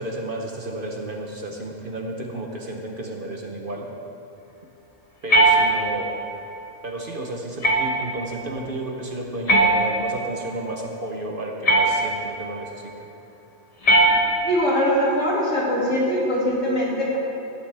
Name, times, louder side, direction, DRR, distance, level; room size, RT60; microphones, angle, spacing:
voice 1, 0.0-3.9 5.2-6.2 6.8-13.1, right 1 dB, 45° right, 1 dB, 1.0 m, -32 dB
sound 1, 5.3-6.2 7.6-8.2 9.5-10.3 11.7-12.4 13.8-14.7, right 1 dB, 30° left, 1.4 m, -19 dB
voice 2, 14.4-17.2, equal, 70° left, -5 dB, 2.9 m, -22 dB
16.5 x 10.0 x 3.4 m, 2.8 s
omnidirectional pair, 1.4 m